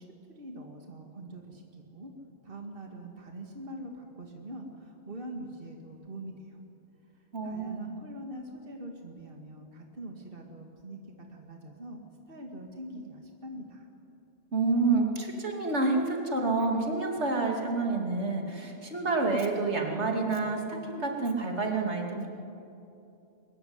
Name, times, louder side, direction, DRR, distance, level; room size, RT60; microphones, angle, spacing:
voice 1, 0.0-2.1 2.4-6.6 7.1-13.9, right 1 dB, 50° right, 1 dB, 2.4 m, -44 dB
voice 2, 7.3-7.9 14.5-22.3, right 3 dB, 70° right, 1 dB, 3.0 m, -28 dB
23.0 x 21.5 x 9.7 m, 2.8 s
omnidirectional pair, 1.2 m